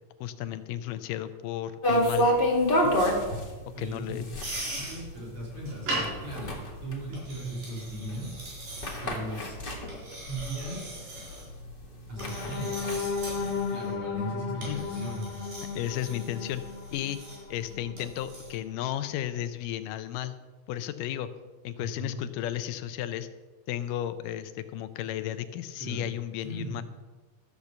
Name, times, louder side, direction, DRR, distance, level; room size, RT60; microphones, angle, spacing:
voice 1, 0.2-2.3 2.8-2.9 3.8-4.3 14.6-14.8 15.7-16.6 16.9-17.2 17.5-20.4 20.7-21.3 21.6-23.3 23.7-26.8, left 12 dB, 85° left, 11 dB, 2.2 m, -34 dB
sound 1, 1.8-10.9 11.3-11.4 11.8-13.6, equal, 25° left, 1.2 m, -28 dB
voice 2, 3.7-4.2 4.5-8.4 9.0-9.6 10.3-11.2 12.1-12.8 13.6-15.3 21.7-22.2 25.8-26.1 26.4-26.8, right 1 dB, 40° right, -4 dB, 4.4 m, -38 dB
sound 2, 4.4-18.5, right 1 dB, 85° right, 6.3 m, -40 dB
sound 3, 12.1-18.1 18.6-18.7 19.1-19.3, left 5 dB, 40° left, 2.2 m, -35 dB
13.0 x 6.7 x 7.2 m, 1.3 s
omnidirectional pair, 3.8 m